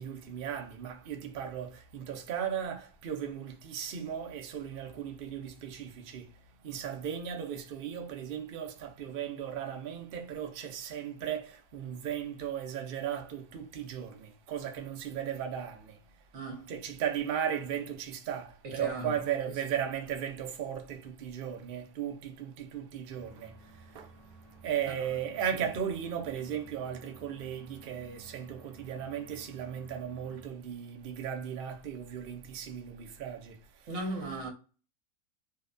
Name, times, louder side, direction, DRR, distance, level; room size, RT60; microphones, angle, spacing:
voice 1, 0.0-16.2 16.7-24.2 24.6-34.0, right 9 dB, 75° right, 0.5 m, -36 dB
voice 2, 16.3-16.7 18.6-19.1 33.9-34.5, right 1 dB, 60° right, 1.0 m, -36 dB
sound 1, 23.1-30.5, right 3 dB, 45° left, 0.8 m, -55 dB
2.8 x 2.1 x 2.3 m
omnidirectional pair, 1.6 m